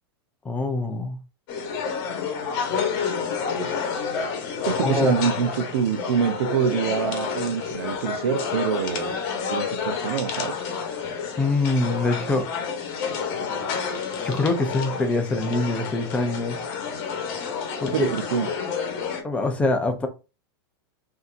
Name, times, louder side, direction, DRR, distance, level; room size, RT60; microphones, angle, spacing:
voice 1, 0.4-1.2 4.8-5.2 11.4-12.5 14.2-16.6 17.8-18.1 19.2-20.1, left 2 dB, 10° left, 0.5 m, -24 dB
sound 1, 1.5-19.2, left 6 dB, 45° left, 1.2 m, -29 dB
voice 2, 4.7-9.2 9.5-10.6 17.9-18.5, right 7 dB, 75° right, 0.7 m, -25 dB
5.4 x 2.8 x 2.6 m
supercardioid pair, 150°, 13 cm